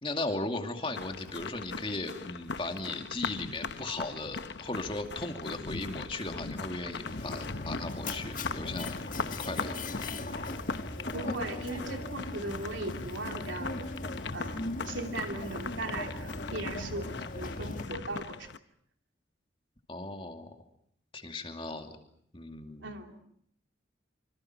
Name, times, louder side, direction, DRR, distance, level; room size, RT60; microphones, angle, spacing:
voice 1, 0.0-8.9 9.5-9.8 19.9-20.5 21.1-21.9 22.3-22.9, left 2 dB, 30° left, 5 dB, 2.5 m, -37 dB
sound 1, 0.9-18.6, left 4 dB, 65° left, 0.9 m, -40 dB
Mechanisms, 7.1-17.8, left 2 dB, 45° left, 2.1 m, -39 dB
voice 2, 11.1-13.9 14.3-18.5 22.8-23.2, right 2 dB, 80° right, 4 dB, 3.2 m, -38 dB
26.5 x 26.5 x 6.1 m, 0.67 s
head